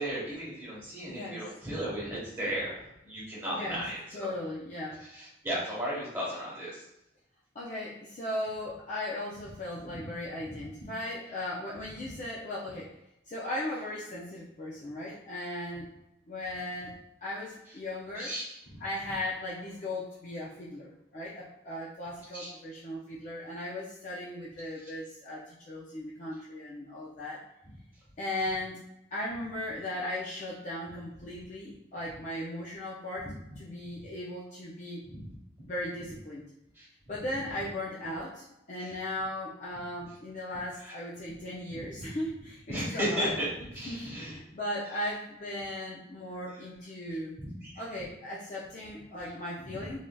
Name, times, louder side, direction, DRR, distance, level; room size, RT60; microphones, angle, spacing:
voice 1, 0.0-4.3 5.0-6.9 9.9-10.0 10.4-10.5 10.8-10.9 12.0-12.1 18.1-18.4 18.7-18.8 22.3-22.5 24.8-24.9 34.0-34.1 35.0-35.3 36.7-36.9 38.8-38.9 40.8-40.9 41.3-41.4 41.7-42.0 42.7-44.3 45.0-45.1 47.4-47.7 49.6-49.9, equal, 15° right, -9 dB, 1.2 m, -35 dB
voice 2, 1.1-1.4 3.5-3.8 4.1-5.1 7.5-12.9 13.3-15.9 16.3-16.9 17.2-18.3 18.8-27.4 28.2-28.8 29.1-33.3 33.6-35.0 35.7-36.5 37.1-43.3 43.9-47.4 47.8-50.0, left 1 dB, 40° left, -6 dB, 0.4 m, -37 dB
3.1 x 2.6 x 2.2 m, 0.84 s
head